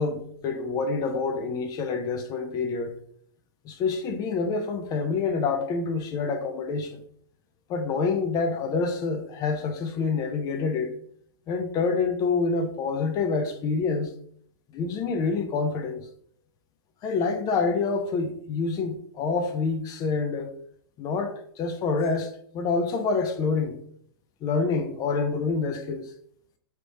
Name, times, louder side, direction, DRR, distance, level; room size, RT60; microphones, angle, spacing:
voice 1, 0.0-3.0 3.6-7.0 7.7-10.9 11.5-14.1 14.7-16.0 17.0-20.5 21.0-23.8 24.4-26.1, left 4 dB, 30° left, 0.5 m, -27 dB
3.3 x 3.0 x 4.1 m
hypercardioid pair, 125°, 13 cm